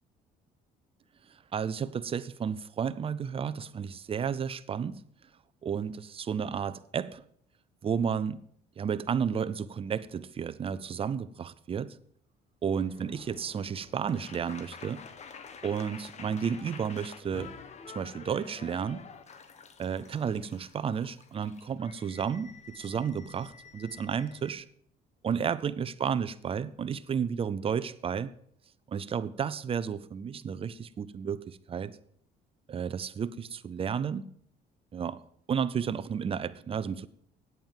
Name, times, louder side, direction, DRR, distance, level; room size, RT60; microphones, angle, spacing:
voice 1, 1.5-5.0 5.6-7.2 7.8-8.4 8.8-12.0 12.6-15.0 15.6-17.5 17.9-19.0 19.8-24.7 25.2-28.3 28.9-32.0 32.7-34.3 34.9-35.2 35.5-37.1, right 7 dB, 35° right, 0.6 m, -32 dB
sound 1, 12.7-24.5, left 6 dB, 40° left, 1.2 m, -49 dB
9.0 x 8.4 x 7.5 m
cardioid pair, 110°, 17 cm